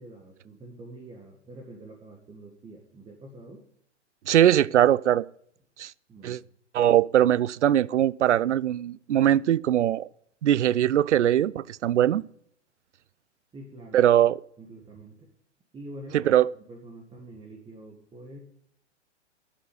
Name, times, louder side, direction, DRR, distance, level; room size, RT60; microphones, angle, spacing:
voice 1, 0.0-3.6 6.1-6.4 13.5-14.2 14.6-15.3 15.7-18.4, right 1 dB, 15° right, 1.9 m, -46 dB
voice 2, 4.3-5.3 5.8-5.9 6.2-6.4 6.7-10.1 10.4-12.2 13.9-14.4 16.1-16.5, right 11 dB, 75° right, 0.5 m, -21 dB
10.5 x 8.5 x 8.5 m
figure-of-eight pair, 115°, 36 cm